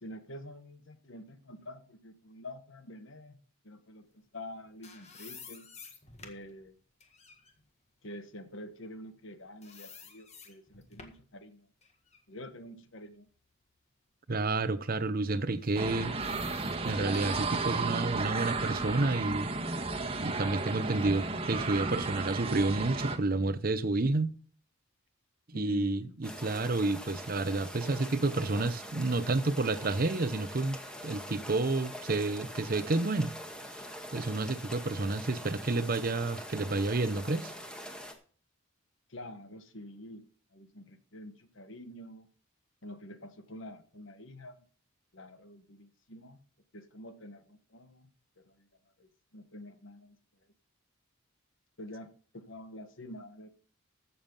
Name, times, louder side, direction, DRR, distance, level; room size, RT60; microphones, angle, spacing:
voice 1, 0.0-3.4 3.6-5.7 6.2-6.7 8.0-11.7 12.3-13.3 25.5-26.2 39.1-40.2 40.5-42.3 42.8-44.6 45.1-46.4 46.7-48.1 48.4-48.7 49.0-50.2 51.8-53.5, left 1 dB, 60° left, 1.3 m, -47 dB
sound 1, 4.4-9.3 9.6-11.3 11.8-13.8 14.2-14.4 15.4-18.4, left 5 dB, 30° left, 1.7 m, -53 dB
voice 2, 14.3-16.1 16.8-19.5 20.2-24.3 25.5-30.8 31.0-33.3 34.1-37.5, right 2 dB, 45° right, 0.7 m, -30 dB
sound 2, 15.8-23.2, right 3 dB, 30° right, 1.4 m, -33 dB
sound 3, 26.2-38.1, equal, 5° left, 1.5 m, -44 dB
14.5 x 7.2 x 5.4 m
head